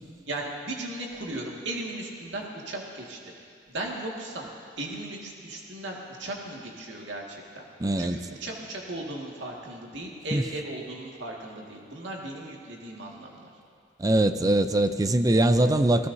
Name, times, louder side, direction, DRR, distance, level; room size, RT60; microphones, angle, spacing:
voice 1, 0.3-3.3 3.7-4.5 4.8-7.6 8.0-13.5, right 1 dB, 90° right, -1 dB, 2.0 m, -36 dB
voice 2, 7.8-8.2 10.3-10.4 14.0-16.1, right 1 dB, 20° right, 9 dB, 0.5 m, -22 dB
30.0 x 17.0 x 2.7 m, 2.3 s
head